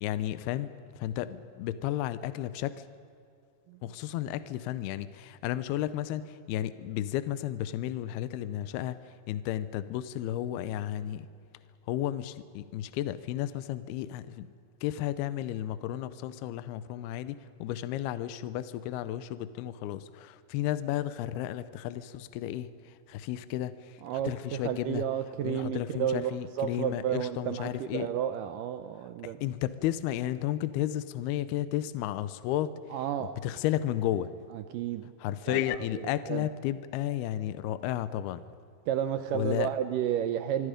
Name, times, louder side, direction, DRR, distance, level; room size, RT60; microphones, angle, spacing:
voice 1, 0.0-2.8 3.8-11.3 11.9-14.5 14.8-25.1 25.4-28.1 29.2-32.8 33.4-34.3 35.2-38.4 39.3-39.7, left 12 dB, 80° left, 14 dB, 2.6 m, -33 dB
voice 2, 24.0-24.3 24.6-29.4 32.9-33.3 34.5-35.1 35.5-36.5 38.9-40.7, right 10 dB, 85° right, 9 dB, 1.9 m, -32 dB
25.5 x 24.5 x 5.1 m, 2.3 s
omnidirectional pair, 4.8 m